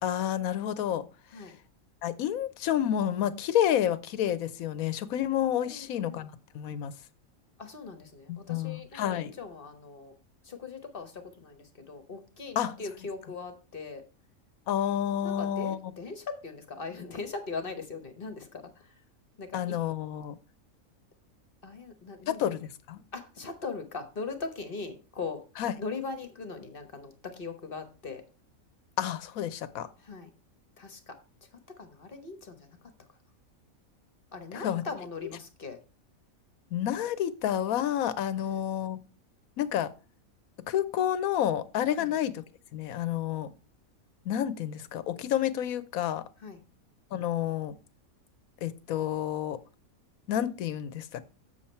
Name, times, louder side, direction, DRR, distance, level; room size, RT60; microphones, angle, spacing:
voice 1, 0.0-1.0 2.0-6.9 8.3-9.3 12.6-12.7 14.7-15.9 19.5-20.4 22.3-23.0 25.6-25.7 29.0-29.9 34.5-34.8 35.2-35.3 36.7-39.0 39.6-39.9 40.7-42.4 42.7-43.5 44.3-46.2 47.1-47.7 48.6-49.6 50.3-51.2, left 10 dB, 80° left, 1.1 m, -29 dB
voice 2, 5.6-6.2 7.6-10.1 10.4-14.0 15.2-18.9 19.4-19.8 21.6-22.5 23.1-25.4 25.8-28.2 30.0-30.3 30.8-31.2 31.8-32.8 34.3-35.8 38.5-38.6 42.0-42.1 46.4-46.6, left 4 dB, 45° left, 1.1 m, -40 dB
7.2 x 6.9 x 4.3 m
omnidirectional pair, 1.5 m